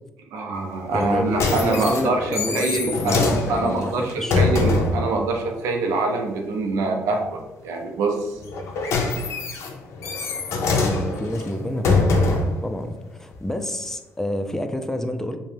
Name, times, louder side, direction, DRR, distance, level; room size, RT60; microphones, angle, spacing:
voice 1, 0.3-8.4, right 3 dB, 85° right, 3 dB, 0.4 m, -25 dB
voice 2, 0.9-1.3 1.6-4.4 10.8-15.4, left 1 dB, 10° left, 7 dB, 0.3 m, -28 dB
sound 1, 1.0-5.1 8.4-12.6 13.3-13.4, left 3 dB, 70° left, 0.5 m, -23 dB
2.5 x 2.1 x 3.2 m, 1.0 s
supercardioid pair, 70°, 5 cm